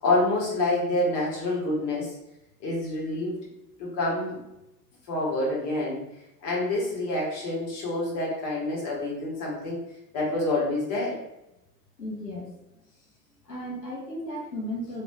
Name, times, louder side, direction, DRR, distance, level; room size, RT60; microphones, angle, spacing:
voice 1, 0.0-2.1 2.6-3.4 3.8-4.4 5.1-6.0 6.4-9.8 10.1-11.2, left 2 dB, 40° left, -4 dB, 1.4 m, -27 dB
voice 2, 12.0-12.5 13.4-15.0, equal, 90° left, -4 dB, 0.8 m, -35 dB
3.2 x 2.6 x 2.6 m, 0.90 s
figure-of-eight pair, 85°, 48 cm